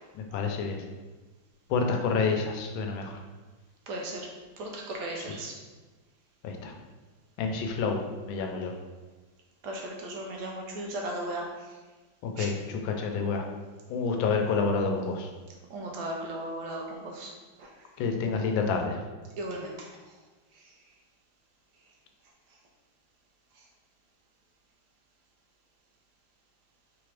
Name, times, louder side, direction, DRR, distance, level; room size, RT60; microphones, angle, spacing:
voice 1, 0.3-0.8 1.7-3.1 6.6-6.7 7.4-8.0 8.3-8.7 12.2-13.4 13.9-15.3 18.0-19.0, left 4 dB, 85° left, 3 dB, 1.3 m, -28 dB
voice 2, 3.9-4.3 4.6-5.5 9.6-11.5 12.4-12.5 15.7-17.3 17.6-17.7 19.4-19.9, right 1 dB, 70° right, 0 dB, 1.1 m, -36 dB
4.6 x 3.5 x 3.3 m, 1.3 s
omnidirectional pair, 2.1 m